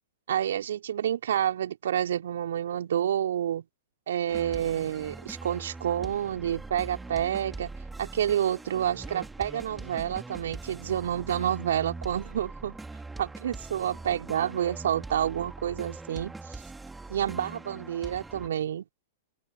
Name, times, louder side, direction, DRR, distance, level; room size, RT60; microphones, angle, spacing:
voice 1, 0.3-3.6 4.1-7.7 8.0-12.8 13.2-16.6 17.1-18.8, right 10 dB, 65° right, 2.9 m, -29 dB
sound 1, 4.3-18.5, right 3 dB, 10° right, 3.2 m, -42 dB
open air
figure-of-eight pair, 105°, 0 cm